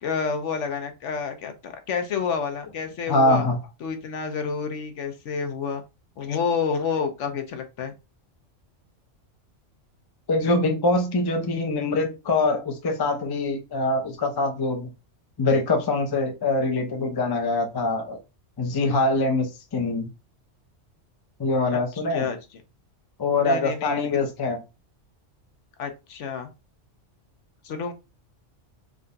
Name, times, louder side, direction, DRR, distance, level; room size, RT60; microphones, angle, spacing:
voice 1, 0.0-3.4 3.8-5.8 6.2-7.9 21.7-21.8 22.1-22.4 23.3-24.2 25.8-26.5 27.6-27.9, left 6 dB, 75° left, 1.0 m, -29 dB
voice 2, 3.1-3.6 10.3-14.9 15.4-18.2 18.6-20.1 21.4-22.3 23.2-24.6, left 2 dB, 30° left, 0.4 m, -24 dB
3.7 x 2.2 x 3.8 m
omnidirectional pair, 1.3 m